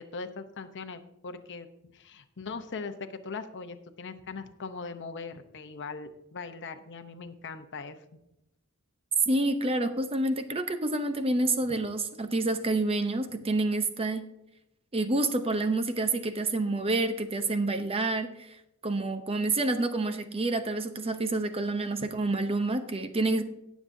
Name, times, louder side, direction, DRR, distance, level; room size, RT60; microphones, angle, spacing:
voice 1, 0.0-1.7 1.9-8.0, left 4 dB, 55° left, 7 dB, 0.8 m, -40 dB
voice 2, 9.3-14.3 14.9-18.6 18.8-23.4, right 2 dB, 25° right, 9 dB, 0.7 m, -28 dB
17.5 x 7.2 x 2.7 m, 0.87 s
head